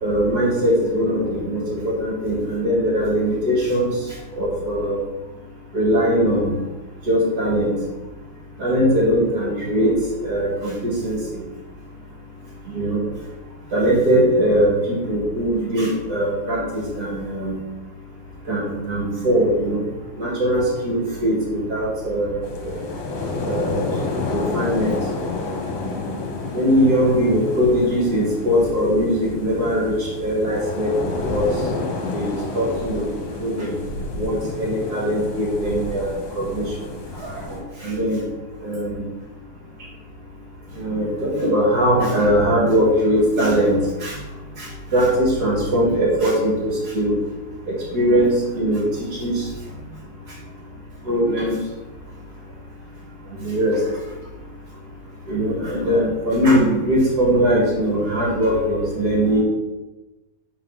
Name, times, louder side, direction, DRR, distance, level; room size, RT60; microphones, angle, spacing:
voice 1, 0.0-4.0 4.4-5.0 5.7-6.5 7.0-7.7 8.6-9.9 10.2-11.4 12.7-13.0 13.7-17.6 18.5-19.8 20.2-22.8 23.4-23.8 24.3-25.0 26.5-31.5 32.1-33.0 33.4-33.8 34.1-36.6 37.5-38.2 38.6-39.0 40.7-44.1 44.6-47.1 47.7-49.4 51.0-51.5 53.4-53.8 55.3-59.4, equal, 40° right, -3 dB, 1.4 m, -21 dB
sound 1, 22.4-37.6, left 3 dB, 65° left, 2.3 m, -30 dB
7.4 x 4.0 x 5.6 m, 1.1 s
omnidirectional pair, 4.4 m